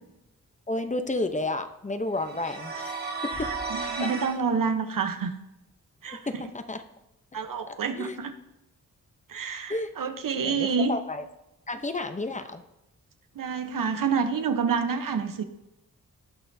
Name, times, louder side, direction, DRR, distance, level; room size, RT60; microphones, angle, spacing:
voice 1, 0.7-3.1 3.4-3.5 4.0-4.1 6.3-6.8 7.9-8.2 9.7-9.9 10.4-11.2 11.7-12.6, left 2 dB, 20° left, 8 dB, 0.7 m, -31 dB
sound 1, 2.2-4.4, right 3 dB, 30° right, 1.6 m, -34 dB
sound 2, 3.3-4.8, left 2 dB, 65° left, 3.5 m, -47 dB
voice 2, 3.7-5.3 6.0-6.2 7.3-8.3 9.3-10.9 13.3-15.4, right 5 dB, 80° right, 8 dB, 1.0 m, -28 dB
18.0 x 6.0 x 2.7 m, 0.89 s
wide cardioid pair, 100°, 33 cm